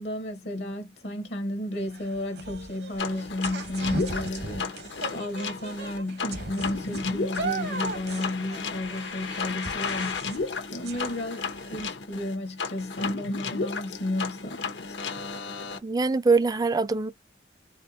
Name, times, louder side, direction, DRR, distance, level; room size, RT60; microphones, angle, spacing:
voice 1, 0.0-4.8 5.1-10.3 10.7-15.0, left 1 dB, 65° left, 0.9 m, -33 dB
sound 1, 1.7-11.9, right 3 dB, 65° right, 1.0 m, -38 dB
sound 2, 3.0-15.8, left 4 dB, 90° left, 1.0 m, -33 dB
voice 2, 15.8-17.1, right 4 dB, 20° right, 0.3 m, -23 dB
4.3 x 3.0 x 2.7 m
head